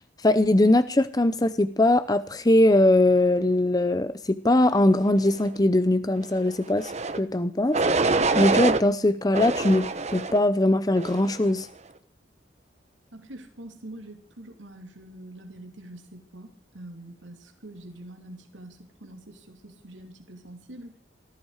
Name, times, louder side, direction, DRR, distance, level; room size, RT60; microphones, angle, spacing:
voice 1, 0.2-11.7, left 1 dB, 20° left, 13 dB, 0.7 m, -21 dB
sound 1, 6.8-7.2 7.7-8.8 9.3-10.4 10.9-11.4, right 3 dB, 35° right, 1.0 m, -25 dB
voice 2, 13.1-20.9, right 1 dB, 80° right, 5 dB, 2.7 m, -45 dB
19.0 x 15.0 x 4.9 m, 0.42 s
head